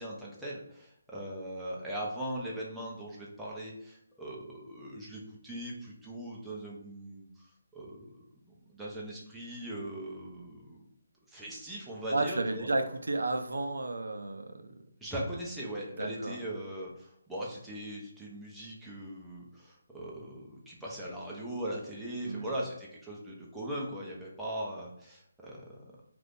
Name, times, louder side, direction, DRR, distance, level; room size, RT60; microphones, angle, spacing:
voice 1, 0.0-7.3 7.7-10.8 11.3-12.7 15.0-25.8, right 1 dB, 5° right, -6 dB, 0.6 m, -40 dB
voice 2, 12.1-14.8 16.0-16.4 22.2-22.5, right 2 dB, 85° right, 6 dB, 0.4 m, -32 dB
2.6 x 2.5 x 3.5 m, 0.74 s
figure-of-eight pair, 160°, 0 cm